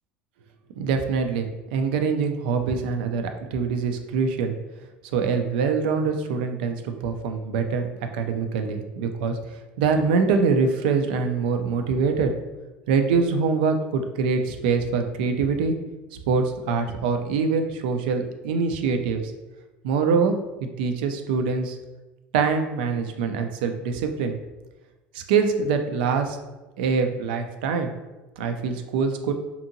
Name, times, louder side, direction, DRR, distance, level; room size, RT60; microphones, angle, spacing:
voice 1, 0.8-3.2 3.5-4.5 5.1-7.9 8.1-9.4 9.8-12.3 12.9-15.7 16.3-19.2 19.8-20.4 20.6-21.8 22.3-24.3 25.1-26.4 26.8-27.9 28.4-29.3, right 5 dB, 85° right, 6 dB, 0.3 m, -24 dB
2.7 x 2.6 x 2.5 m, 1.1 s
supercardioid pair, 90°, 5 cm